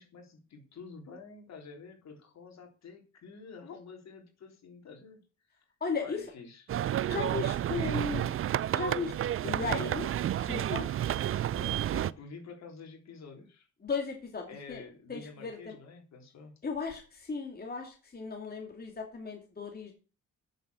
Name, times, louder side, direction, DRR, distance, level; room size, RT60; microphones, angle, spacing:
voice 1, 0.0-5.2 5.5-5.6 6.0-6.7 7.7-8.4 11.5-13.7 14.5-16.5, left 5 dB, 60° left, 2 dB, 3.7 m, -49 dB
voice 2, 5.8-6.3 7.0-8.4 8.7-9.1 9.4-10.1 10.3-10.9 13.8-14.8 15.1-15.8 16.6-19.9, left 4 dB, 30° left, 1 dB, 2.6 m, -36 dB
sound 1, 6.7-12.1, right 11 dB, 45° right, 0.5 m, -31 dB
9.0 x 7.3 x 6.3 m, 0.34 s
cardioid pair, 90°, 30 cm